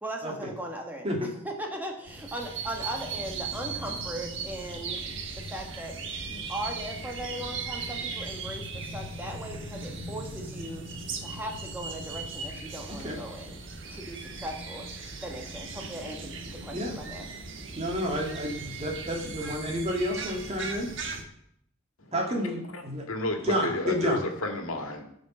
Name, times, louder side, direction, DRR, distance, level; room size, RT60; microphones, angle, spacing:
voice 1, 0.0-5.0 5.5-5.9 6.3-10.8 11.2-13.6 13.9-14.9 15.2-17.3, right 1 dB, 10° right, 1 dB, 1.3 m, -38 dB
sound 1, 2.1-21.2, right 4 dB, 60° right, 1.4 m, -38 dB
voice 2, 12.9-13.2 16.7-17.0 17.8-20.9 22.1-23.1 23.4-24.2, equal, 30° right, 1 dB, 2.1 m, -30 dB
voice 3, 23.1-25.0, left 2 dB, 80° left, 4 dB, 1.9 m, -31 dB
14.5 x 5.2 x 6.2 m, 0.73 s
head